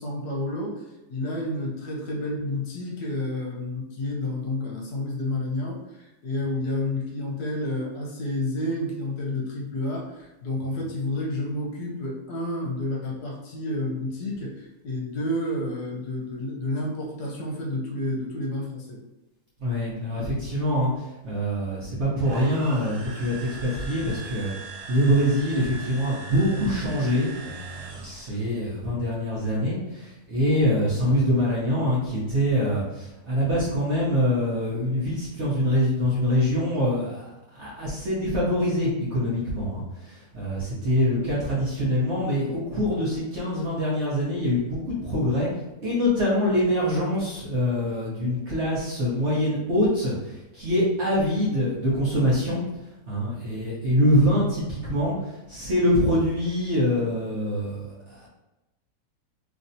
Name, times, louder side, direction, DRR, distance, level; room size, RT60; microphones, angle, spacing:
voice 1, 0.0-19.0, left 1 dB, 70° left, -2 dB, 1.2 m, -30 dB
voice 2, 19.6-24.5 24.9-37.3 37.5-45.5 45.8-52.6 53.1-58.3, equal, 50° right, -7 dB, 1.0 m, -24 dB
sound 1, 22.2-28.5, right 3 dB, 80° right, 0.5 m, -41 dB
3.2 x 2.6 x 2.6 m, 1.0 s
omnidirectional pair, 1.9 m